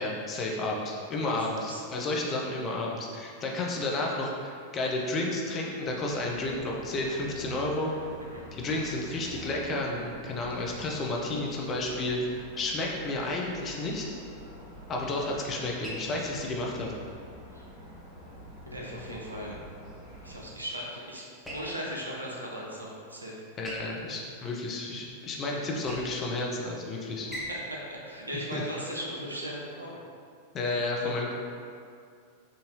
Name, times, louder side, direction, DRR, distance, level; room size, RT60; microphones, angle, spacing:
voice 1, 0.0-7.9 8.5-14.0 14.9-16.9 23.6-27.3 28.5-28.6 30.5-31.3, left 2 dB, 30° left, -1 dB, 0.5 m, -31 dB
voice 2, 1.2-1.8 8.3-8.4 17.5-17.7 18.6-19.5 20.2-23.4 25.7-25.8 27.4-30.0 31.0-31.1, equal, 85° right, -4 dB, 0.6 m, -38 dB
sound 1, 6.0-20.4, equal, 35° right, 1.1 m, -47 dB
sound 2, 13.2-29.3, equal, ahead, 0.8 m, -47 dB
3.7 x 2.6 x 2.8 m, 2.3 s
figure-of-eight pair, 90°, 0 cm